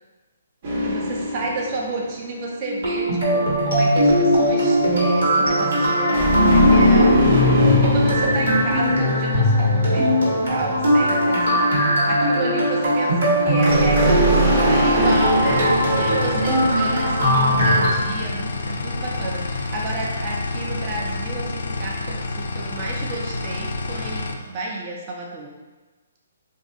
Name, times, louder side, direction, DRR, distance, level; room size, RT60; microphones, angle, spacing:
sound 1, 0.6-2.2 6.1-9.9 13.6-16.9, equal, 45° right, 0.9 m, -20 dB
voice 1, 0.8-25.5, right 2 dB, 30° right, -2 dB, 0.5 m, -31 dB
sound 2, 2.6-17.9, equal, 75° right, 1.3 m, -19 dB
sound 3, 15.0-24.4, left 2 dB, 70° left, 0.3 m, -29 dB
2.5 x 2.4 x 3.7 m, 1.2 s
hypercardioid pair, 155°, 0 cm